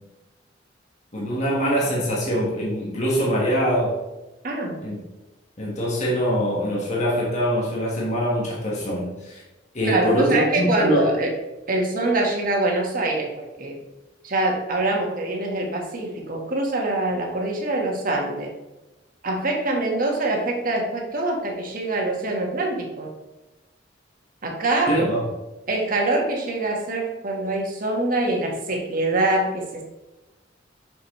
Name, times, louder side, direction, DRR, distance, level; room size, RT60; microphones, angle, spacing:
voice 1, 1.1-4.0 4.8-5.0 5.6-9.4 9.7-11.2 24.9-25.3, equal, 40° left, -4 dB, 1.4 m, -23 dB
voice 2, 4.4-4.8 9.8-11.3 11.7-13.8 14.2-18.5 19.2-23.1 24.4-25.0 25.7-29.8, right 2 dB, 50° right, 1 dB, 1.4 m, -24 dB
6.3 x 6.0 x 3.1 m, 1.1 s
head